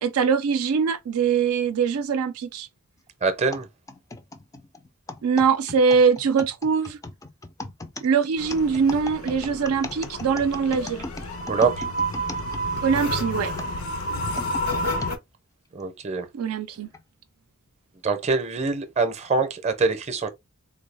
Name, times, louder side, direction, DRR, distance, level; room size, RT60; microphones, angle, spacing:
voice 1, 0.0-2.7 5.2-7.0 8.0-11.0 12.8-13.5 16.3-16.9, right 6 dB, 80° right, 0.4 m, -22 dB
voice 2, 3.2-3.7 11.5-11.8 15.7-16.3 18.0-20.3, right 4 dB, 30° right, 0.6 m, -24 dB
sound 1, 3.5-13.0 13.6-15.2 15.8-15.9 16.7-17.0, left 2 dB, 15° left, 0.3 m, -38 dB
sound 2, 8.4-15.2, equal, 85° left, 0.8 m, -30 dB
3.6 x 2.3 x 3.3 m
head